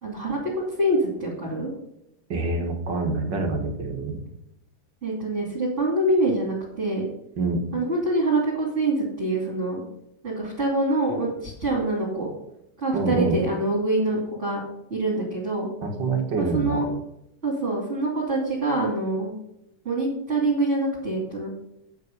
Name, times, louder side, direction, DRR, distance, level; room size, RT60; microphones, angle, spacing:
voice 1, 0.0-1.7 5.0-7.1 7.7-9.8 10.2-12.3 12.8-14.6 14.9-15.7 16.4-16.8 17.4-19.3 19.8-21.5, right 2 dB, 25° right, -5 dB, 2.7 m, -25 dB
voice 2, 2.3-4.2 7.4-7.6 12.9-13.4 15.8-16.9, right 3 dB, 45° right, 3 dB, 1.9 m, -26 dB
9.2 x 7.3 x 5.4 m, 0.80 s
omnidirectional pair, 3.6 m